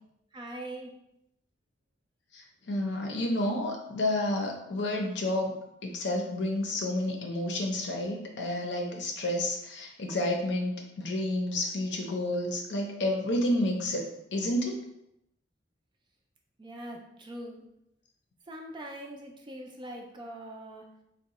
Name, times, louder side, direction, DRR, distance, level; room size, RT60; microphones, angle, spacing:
voice 1, 0.3-0.9 16.6-17.6 18.5-20.8, right 1 dB, 25° right, 1 dB, 0.4 m, -42 dB
voice 2, 2.7-14.8, left 1 dB, 65° left, 1 dB, 0.6 m, -30 dB
2.7 x 2.1 x 4.1 m, 0.82 s
head